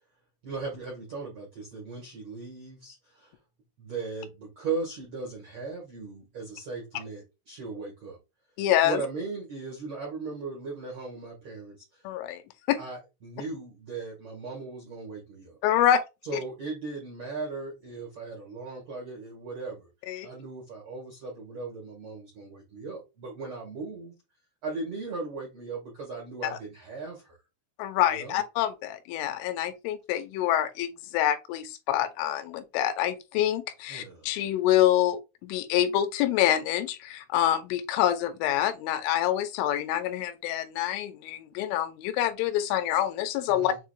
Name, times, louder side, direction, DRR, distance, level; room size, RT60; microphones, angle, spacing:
voice 1, 0.4-3.3 3.8-8.2 8.8-12.0 12.7-15.6 16.2-19.9 20.2-24.1 24.6-27.4 28.1-28.4 33.9-34.3 43.5-43.8, right 4 dB, 80° right, 1.4 m, -38 dB
voice 2, 8.6-9.0 12.0-12.4 12.7-12.8 15.6-16.0 20.1-20.3 26.5-26.6 27.8-43.7, left 11 dB, 85° left, 3.1 m, -26 dB
7.2 x 3.1 x 2.2 m
omnidirectional pair, 5.6 m